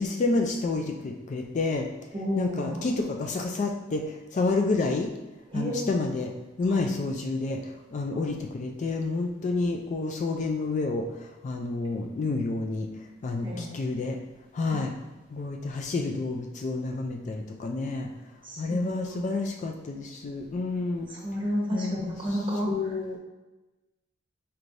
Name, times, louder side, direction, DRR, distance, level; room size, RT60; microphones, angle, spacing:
voice 1, 0.0-1.9 2.4-4.1 4.3-5.1 5.5-6.3 6.6-7.6 7.9-12.9 13.2-14.2 14.5-14.9 15.3-18.1 18.6-21.1 21.7-22.0 22.3-22.4 22.6-23.2, left 3 dB, 40° left, 3 dB, 0.3 m, -29 dB
voice 2, 2.1-2.8 5.5-5.9 6.7-6.8 8.1-8.2 13.4-13.8 14.6-14.8 18.4-19.2 21.1-22.7, equal, 25° right, -4 dB, 1.0 m, -31 dB
4.4 x 3.2 x 2.6 m, 1.1 s
head